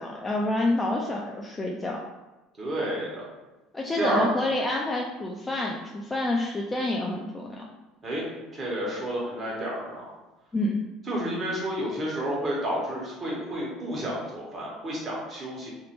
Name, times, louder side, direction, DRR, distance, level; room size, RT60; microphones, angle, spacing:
voice 1, 0.0-2.0 3.7-7.6 10.5-10.8, left 2 dB, 20° left, -1 dB, 0.3 m, -28 dB
voice 2, 2.6-3.2 3.9-4.2 8.0-8.2 8.5-10.0 11.1-15.7, right 1 dB, 30° right, -5 dB, 1.1 m, -30 dB
2.6 x 2.1 x 2.9 m, 1.1 s
supercardioid pair, 85°, 0 cm